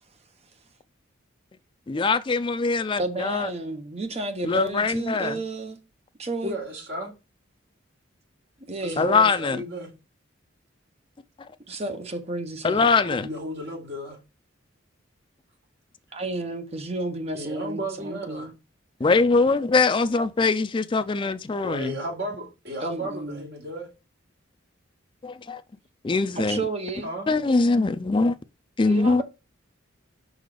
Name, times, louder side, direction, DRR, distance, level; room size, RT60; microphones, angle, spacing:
voice 1, 1.9-3.5 4.4-5.4 9.0-9.6 12.6-13.3 19.0-21.9 25.2-25.6 26.0-26.6 27.3-28.4 28.8-29.2, left 4 dB, 25° left, 0.3 m, -22 dB
voice 2, 3.0-5.8 6.2-6.6 8.7-9.1 11.7-12.8 16.1-18.5 22.8-23.4 26.3-27.1 28.9-29.2, right 2 dB, 30° right, 0.9 m, -32 dB
voice 3, 6.4-7.1 8.8-9.9 13.0-14.2 17.3-18.5 21.6-23.9 27.0-27.3, right 1 dB, 55° right, 2.7 m, -34 dB
5.5 x 4.0 x 4.9 m
head